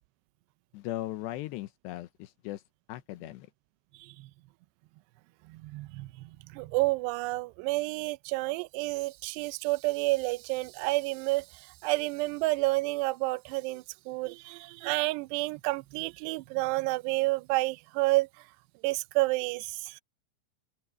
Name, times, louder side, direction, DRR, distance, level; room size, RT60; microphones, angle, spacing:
voice 1, 0.7-2.6 2.9-3.5, left 15 dB, 75° left, 2.8 m, -38 dB
voice 2, 4.0-4.3 5.5-18.4 18.8-20.0, right 22 dB, 85° right, 2.4 m, -30 dB
omnidirectional pair, 5.5 m